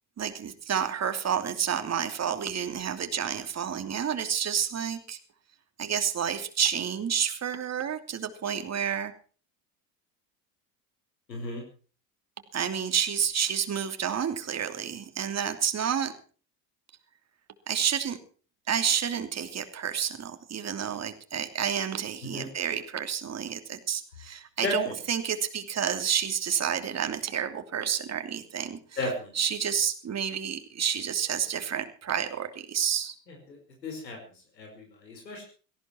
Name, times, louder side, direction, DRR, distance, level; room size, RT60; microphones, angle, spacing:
voice 1, 0.2-5.2 5.8-9.1 12.5-16.1 17.7-18.2 18.7-28.8 29.4-33.1, right 8 dB, 30° right, 7 dB, 2.9 m, -29 dB
voice 2, 11.3-11.6 22.2-22.5 24.6-24.9 29.0-29.3 33.3-33.6 33.8-34.2 34.6-35.4, left 2 dB, 90° left, 2 dB, 5.2 m, -34 dB
17.5 x 15.5 x 4.5 m, 0.40 s
hypercardioid pair, 75°, 49 cm